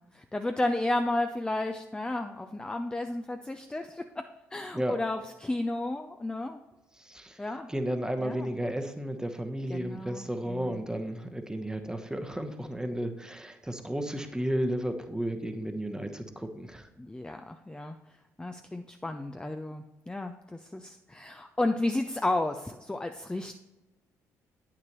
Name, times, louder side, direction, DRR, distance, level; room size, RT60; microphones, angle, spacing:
voice 1, 0.0-6.6 7.4-7.7 8.2-8.5 9.7-10.8 17.0-18.0 18.4-23.6, left 2 dB, 10° left, 6 dB, 0.4 m, -33 dB
voice 2, 7.0-16.9, right 1 dB, 10° right, 7 dB, 1.0 m, -33 dB
8.9 x 6.0 x 3.0 m, 1.1 s
hypercardioid pair, 45°, 8 cm